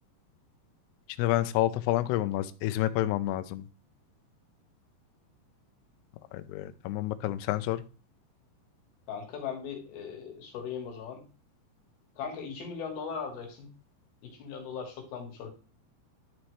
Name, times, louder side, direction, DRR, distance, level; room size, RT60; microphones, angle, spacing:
voice 1, 1.2-3.6 6.3-7.8, left 14 dB, 85° left, 11 dB, 2.3 m, -29 dB
voice 2, 9.1-11.2 12.2-13.7 14.3-15.5, left 6 dB, 65° left, 1 dB, 3.1 m, -38 dB
11.0 x 4.3 x 3.1 m, 0.35 s
omnidirectional pair, 5.2 m